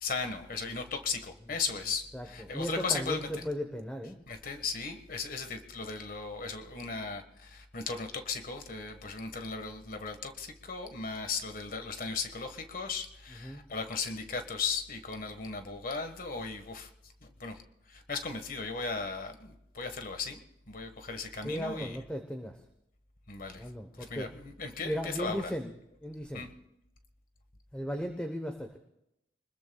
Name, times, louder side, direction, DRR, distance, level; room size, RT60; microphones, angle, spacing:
voice 1, 0.0-3.3 4.3-16.9 17.2-17.6 17.9-20.4 20.7-22.0 23.3-23.7 24.1-25.5 26.3-26.5, left 4 dB, 50° left, 7 dB, 1.5 m, -36 dB
voice 2, 2.1-4.2 13.4-13.6 21.4-22.6 23.6-24.3 24.8-25.7 26.0-26.4 27.7-28.8, equal, 5° left, 4 dB, 1.0 m, -36 dB
24.5 x 21.0 x 2.3 m, 0.85 s
head